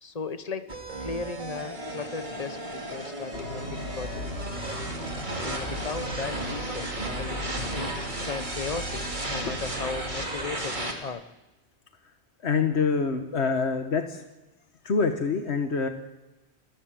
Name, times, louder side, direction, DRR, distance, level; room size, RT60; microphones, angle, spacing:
voice 1, 0.0-4.2 5.3-11.3, left 4 dB, 35° left, 11 dB, 1.2 m, -37 dB
sound 1, 0.7-10.9, right 1 dB, 45° right, 2.9 m, -34 dB
sound 2, 3.3-10.3, equal, 65° left, 2.8 m, -38 dB
voice 2, 12.4-14.2 14.8-15.9, left 5 dB, 90° left, 6 dB, 1.6 m, -25 dB
28.5 x 14.5 x 7.6 m, 1.0 s
omnidirectional pair, 1.1 m